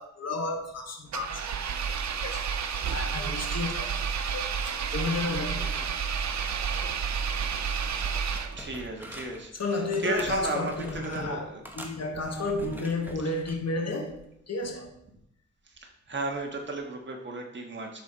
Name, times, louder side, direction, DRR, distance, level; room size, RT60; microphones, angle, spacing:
voice 1, 0.0-1.4 2.2-2.4 2.9-3.9 4.3-4.6 4.9-6.2 9.5-14.2 14.5-14.9, left 3 dB, 60° left, 3 dB, 1.4 m, -32 dB
Engine, 1.1-8.8, right 6 dB, 70° right, 0.6 m, -30 dB
sound 1, 7.9-9.5 9.9-11.3 11.6-13.6 14.1-14.3, right 1 dB, 5° right, 1.1 m, -45 dB
voice 2, 8.6-11.6 12.6-12.8 13.2-13.3 15.7-18.0, right 2 dB, 40° right, 1 dB, 1.6 m, -34 dB
11.5 x 4.3 x 4.3 m, 0.77 s
wide cardioid pair, 120°, 29 cm